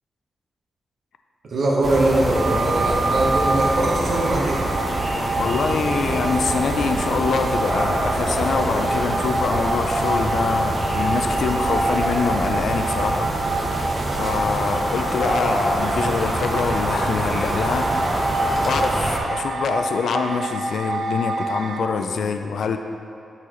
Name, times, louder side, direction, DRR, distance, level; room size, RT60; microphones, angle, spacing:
voice 1, 1.4-4.7, right 1 dB, 65° right, -4 dB, 1.2 m, -21 dB
sound 1, 1.8-19.2, right 1 dB, 25° right, 0.7 m, -25 dB
sound 2, 2.3-21.8, right 2 dB, 80° right, 0.3 m, -27 dB
voice 2, 5.4-13.3 14.2-17.9 18.3-18.4 18.6-22.8, left 5 dB, 75° left, 6 dB, 0.3 m, -25 dB
9.7 x 4.0 x 3.1 m, 2.6 s
wide cardioid pair, 150°, 0 cm